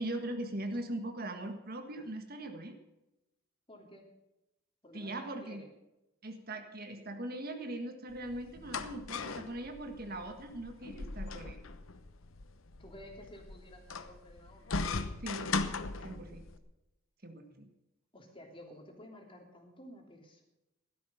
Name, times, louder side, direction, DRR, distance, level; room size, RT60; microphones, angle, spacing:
voice 1, 0.0-2.8 4.9-5.6 6.2-11.6 15.2-15.5 16.0-16.4 17.2-17.7, right 1 dB, 45° right, 6 dB, 1.6 m, -40 dB
voice 2, 3.7-4.1 4.8-5.7 12.8-14.7 16.1-16.4 18.1-20.4, equal, 25° left, 2 dB, 3.1 m, -53 dB
sound 1, 8.1-16.6, left 4 dB, 80° left, 1.0 m, -39 dB
15.5 x 12.5 x 5.7 m, 0.93 s
head